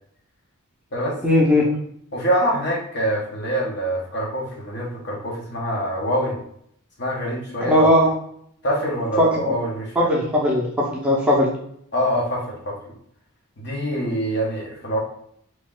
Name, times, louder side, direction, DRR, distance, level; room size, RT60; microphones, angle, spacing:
voice 1, 1.2-1.7 7.6-8.1 9.2-9.6 10.0-11.5, left 1 dB, 5° right, -4 dB, 0.7 m, -18 dB
voice 2, 2.1-6.4 7.0-7.9 8.6-10.1 11.9-12.8 13.6-15.0, equal, 50° left, -2 dB, 1.1 m, -25 dB
3.1 x 3.1 x 3.7 m, 0.68 s
head